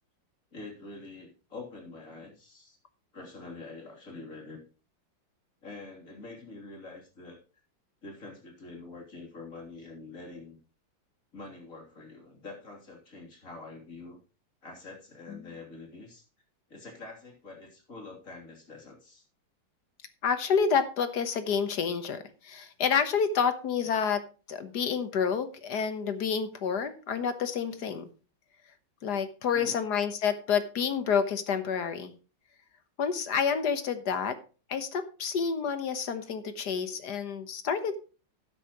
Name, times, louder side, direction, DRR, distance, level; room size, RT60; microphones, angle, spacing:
voice 1, 0.5-2.8 3.1-4.7 5.6-7.4 8.0-10.6 11.3-14.2 14.6-16.3 16.7-19.3 23.8-24.0 29.5-29.8, left 3 dB, 40° left, 0 dB, 3.6 m, -45 dB
voice 2, 20.2-24.2 24.5-28.1 29.0-32.1 33.0-34.4 34.7-38.0, left 6 dB, 60° left, 10 dB, 1.7 m, -29 dB
12.5 x 9.7 x 3.0 m, 0.35 s
omnidirectional pair, 2.1 m